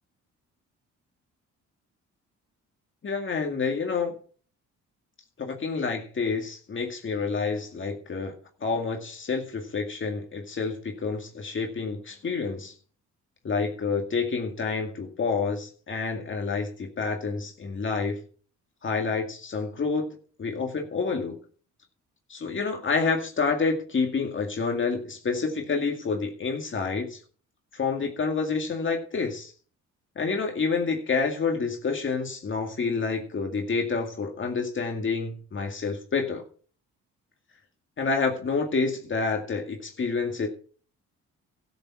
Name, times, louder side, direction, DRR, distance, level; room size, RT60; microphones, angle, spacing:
voice 1, 3.0-4.2 5.4-8.3 8.6-12.7 13.4-18.2 18.8-21.4 22.3-27.2 27.7-29.5 30.2-36.4 38.0-40.5, left 4 dB, 40° left, 2.1 m, -28 dB
13.0 x 7.1 x 5.8 m
cardioid pair, 90°, 30 cm